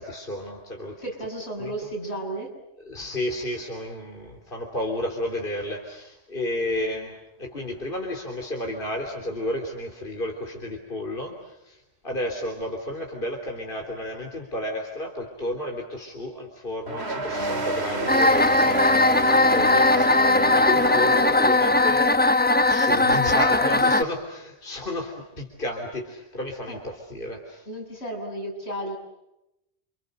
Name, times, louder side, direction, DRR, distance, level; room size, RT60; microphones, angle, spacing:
voice 1, 0.0-1.0 1.6-1.7 2.8-18.8 19.5-22.3 22.6-27.7, left 1 dB, 55° left, 2 dB, 3.6 m, -32 dB
voice 2, 1.0-2.5 19.4-19.7 26.7-26.8 27.7-29.0, right 1 dB, 80° left, 1 dB, 7.9 m, -33 dB
sound 1, 16.9-22.0, right 2 dB, 75° right, 2.8 m, -30 dB
sound 2, 18.1-24.0, left 2 dB, 10° left, 0.9 m, -19 dB
29.5 x 27.5 x 6.6 m, 0.89 s
omnidirectional pair, 1.1 m